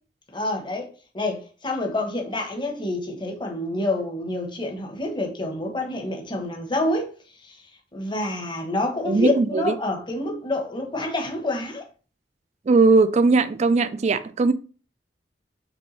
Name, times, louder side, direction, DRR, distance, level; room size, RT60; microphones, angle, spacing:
voice 1, 0.3-7.1 7.4-7.6 7.9-11.8, left 2 dB, 25° left, 1.0 m, -28 dB
voice 2, 9.0-9.7 12.7-14.5, right 3 dB, 40° right, 0.4 m, -19 dB
5.3 x 3.2 x 3.1 m
head